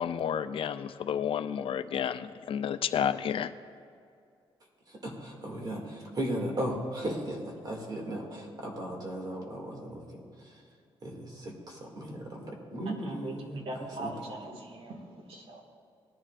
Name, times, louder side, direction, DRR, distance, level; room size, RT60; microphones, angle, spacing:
voice 1, 0.0-3.5, left 8 dB, 60° left, 12 dB, 0.4 m, -31 dB
voice 2, 4.9-10.6 11.0-14.2, right 1 dB, 40° right, 0 dB, 2.3 m, -37 dB
voice 3, 13.0-15.0 15.3-15.6, right 2 dB, 70° right, 1 dB, 1.9 m, -41 dB
18.5 x 11.0 x 2.5 m, 2.4 s
cardioid pair, 115°, 10 cm